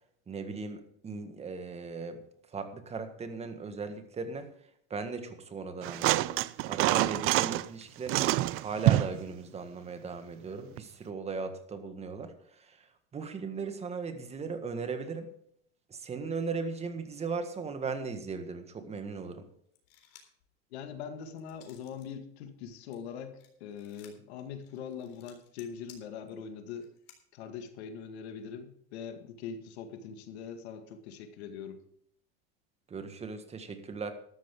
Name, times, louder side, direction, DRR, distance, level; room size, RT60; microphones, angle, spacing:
voice 1, 0.3-2.2 2.5-4.5 4.9-6.3 6.7-12.9 13.1-15.3 15.9-19.5 32.9-34.1, right 4 dB, 20° right, 8 dB, 1.7 m, -37 dB
sound 1, 5.8-7.7 8.1-9.2 10.8-10.9, right 17 dB, 45° right, 0.5 m, -26 dB
sound 2, 19.7-20.4 20.9-22.1 22.5-27.2, left 10 dB, 70° left, 3.8 m, -59 dB
voice 2, 20.7-26.9 27.3-31.8, left 7 dB, 85° left, 7 dB, 2.0 m, -42 dB
13.0 x 12.5 x 3.7 m, 0.68 s
supercardioid pair, 140°, 31 cm